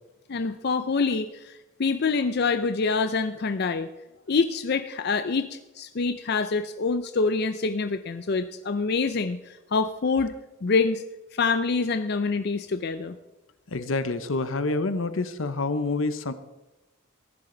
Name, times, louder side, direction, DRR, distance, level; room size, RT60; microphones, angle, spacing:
voice 1, 0.3-3.9 4.3-10.3 10.6-11.0 11.3-13.2, left 4 dB, 55° left, 10 dB, 0.5 m, -26 dB
voice 2, 13.7-16.3, left 3 dB, 80° left, 12 dB, 0.9 m, -27 dB
15.0 x 11.0 x 3.9 m, 1.0 s
head